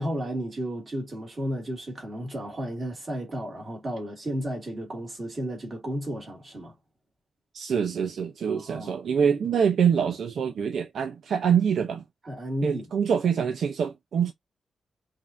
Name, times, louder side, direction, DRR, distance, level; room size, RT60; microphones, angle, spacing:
voice 1, 0.0-6.7 8.5-8.9 12.2-12.9, equal, 25° right, 2.6 m, -33 dB
voice 2, 7.5-12.0 12.6-14.3, right 7 dB, 60° right, 0.7 m, -25 dB
5.3 x 2.7 x 2.6 m
wide cardioid pair, 175°, 0 cm